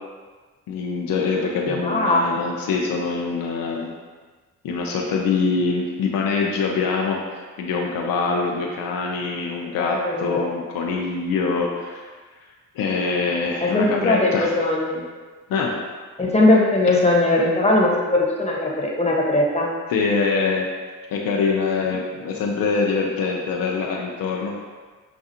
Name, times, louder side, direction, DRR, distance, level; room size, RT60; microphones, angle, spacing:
voice 1, 0.7-3.9 4.6-12.0 12.7-14.5 15.5-15.8 19.9-20.7 21.1-24.5, left 4 dB, 80° left, -1 dB, 0.6 m, -24 dB
voice 2, 1.8-2.5 9.8-10.5 13.6-15.0 16.2-19.7 21.8-22.0, left 2 dB, 20° left, -3 dB, 1.2 m, -20 dB
6.6 x 2.3 x 2.8 m, 1.4 s
supercardioid pair, 50°, 34 cm